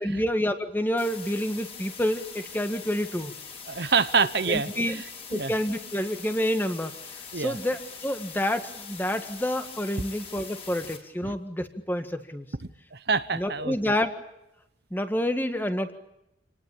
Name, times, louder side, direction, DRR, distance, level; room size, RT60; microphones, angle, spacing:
voice 1, 0.0-3.3 4.5-5.0 5.3-6.9 7.4-12.5 13.3-14.1 14.9-15.9, equal, 10° left, 8 dB, 1.8 m, -28 dB
sound 1, 1.0-11.0, left 6 dB, 30° left, 4.5 m, -43 dB
voice 2, 3.7-5.0 5.3-5.5 7.3-7.6 11.2-11.3 12.9-13.8, right 5 dB, 60° right, 13 dB, 1.0 m, -26 dB
28.0 x 19.5 x 8.6 m, 0.86 s
head